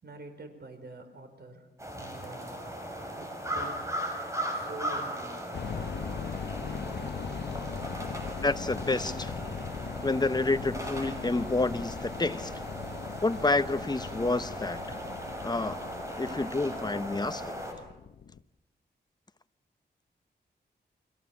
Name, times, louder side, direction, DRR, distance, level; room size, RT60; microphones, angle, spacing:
voice 1, 0.0-1.7 1.9-2.5 3.1-3.9 4.5-5.5, right 3 dB, 65° right, 7 dB, 4.9 m, -46 dB
sound 1, 1.8-17.7, equal, 15° right, 5.9 m, -38 dB
sound 2, 5.5-18.4, left 7 dB, 70° left, 0.9 m, -40 dB
voice 2, 8.4-9.3 10.0-12.5 13.2-15.0 15.4-15.9 16.2-17.6, left 2 dB, 25° left, 12 dB, 1.0 m, -29 dB
30.0 x 24.0 x 7.3 m, 0.94 s
wide cardioid pair, 110°, 18 cm